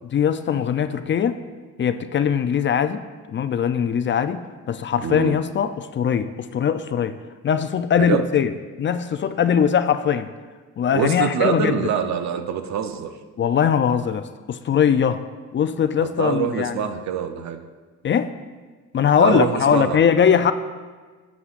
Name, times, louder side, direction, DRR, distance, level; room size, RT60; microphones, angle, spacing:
voice 1, 0.1-1.4 1.8-3.0 3.3-4.4 4.7-7.2 7.4-8.5 8.8-10.3 10.8-11.9 13.4-15.2 15.5-16.9 18.0-18.3 18.9-20.5, left 8 dB, 40° left, 11 dB, 0.4 m, -21 dB
voice 2, 5.0-5.4 8.0-8.2 10.9-13.1 16.0-17.6 19.2-20.0, right 8 dB, 65° right, 8 dB, 0.7 m, -24 dB
11.0 x 8.4 x 2.5 m, 1.4 s
cardioid pair, 90°, 30 cm